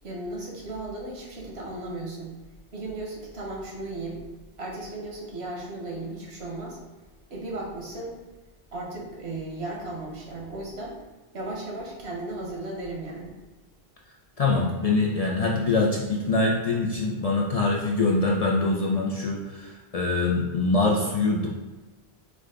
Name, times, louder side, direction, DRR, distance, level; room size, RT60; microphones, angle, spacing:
voice 1, 0.0-2.3 2.7-4.2 4.6-6.8 7.3-8.2 8.7-11.0 11.3-13.4, right 2 dB, 80° right, -2 dB, 1.3 m, -35 dB
voice 2, 14.4-21.5, left 3 dB, 50° left, -2 dB, 0.5 m, -24 dB
5.0 x 2.2 x 3.6 m, 1.2 s
omnidirectional pair, 1.1 m